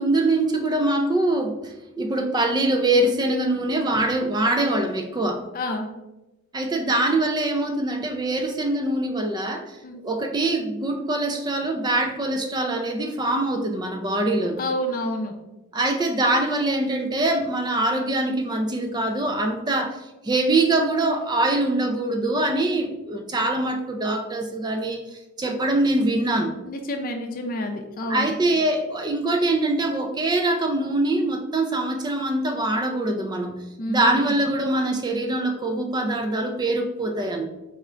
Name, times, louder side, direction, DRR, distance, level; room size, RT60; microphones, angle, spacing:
voice 1, 0.0-5.4 6.5-9.8 10.0-14.6 15.7-26.6 28.1-33.6 33.9-37.5, right 2 dB, 20° right, 5 dB, 0.4 m, -23 dB
voice 2, 5.5-5.9 9.8-10.0 14.6-15.3 26.7-28.3 33.8-34.2, left 1 dB, 45° left, 4 dB, 0.5 m, -28 dB
4.8 x 2.4 x 3.2 m, 0.97 s
head